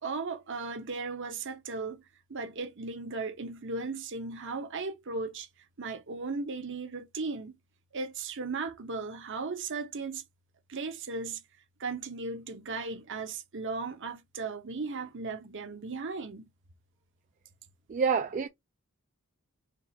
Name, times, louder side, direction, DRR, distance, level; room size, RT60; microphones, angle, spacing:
voice 1, 0.0-2.0 2.3-5.5 5.8-7.5 7.9-10.2 10.7-11.4 11.8-16.5, right 4 dB, 55° right, 0.8 m, -36 dB
voice 2, 17.9-18.5, right 6 dB, 35° right, 0.3 m, -27 dB
4.4 x 2.4 x 4.2 m
head